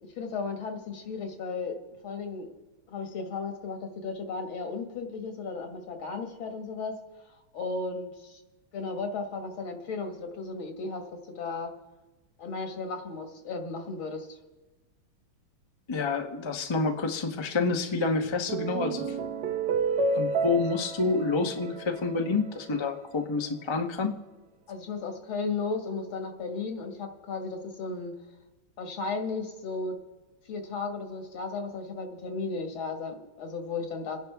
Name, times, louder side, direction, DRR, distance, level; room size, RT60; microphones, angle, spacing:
voice 1, 0.0-2.5 2.9-7.0 7.5-8.4 8.7-11.7 12.4-14.4 24.7-28.1 28.8-30.0 30.5-34.2, left 4 dB, 75° left, 4 dB, 2.5 m, -35 dB
voice 2, 15.9-19.1 20.2-24.1, left 4 dB, 30° left, 4 dB, 0.5 m, -28 dB
sound 1, 18.2-22.8, right 4 dB, 60° right, 1.3 m, -31 dB
28.5 x 10.5 x 3.5 m, 1.2 s
omnidirectional pair, 2.3 m